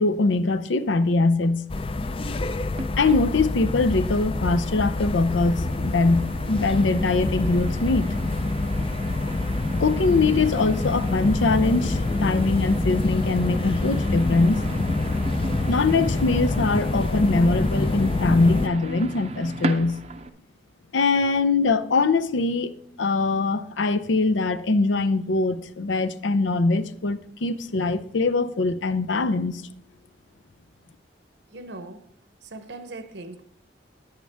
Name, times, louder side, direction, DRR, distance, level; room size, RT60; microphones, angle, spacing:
voice 1, 0.0-1.7 3.0-8.1 9.8-14.6 15.7-20.0 20.9-29.6, left 3 dB, 85° left, 0.6 m, -22 dB
sound 1, 1.7-18.7, left 2 dB, 30° left, 0.4 m, -26 dB
sound 2, 2.7-20.3, right 2 dB, 35° right, 0.5 m, -36 dB
voice 2, 31.5-32.1 32.4-33.4, right 2 dB, 70° right, 0.8 m, -39 dB
10.0 x 8.8 x 3.4 m
head